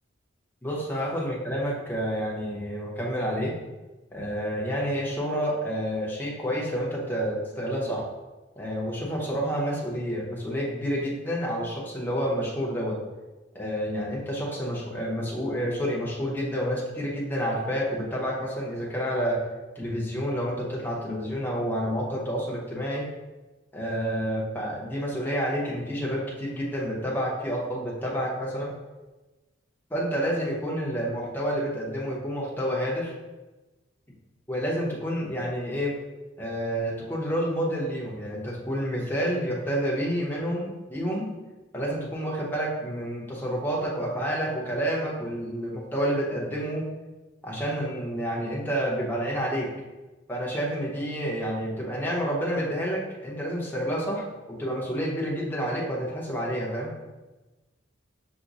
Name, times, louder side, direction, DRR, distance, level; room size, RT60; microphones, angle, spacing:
voice 1, 0.6-3.5 4.1-8.0 8.6-13.0 13.5-19.4 19.8-23.1 23.7-28.7 29.9-33.1 34.5-35.9 36.4-41.3 41.7-46.8 47.4-49.7 50.3-56.9, equal, 10° left, -4 dB, 0.8 m, -29 dB
5.9 x 2.1 x 3.9 m, 1.1 s
head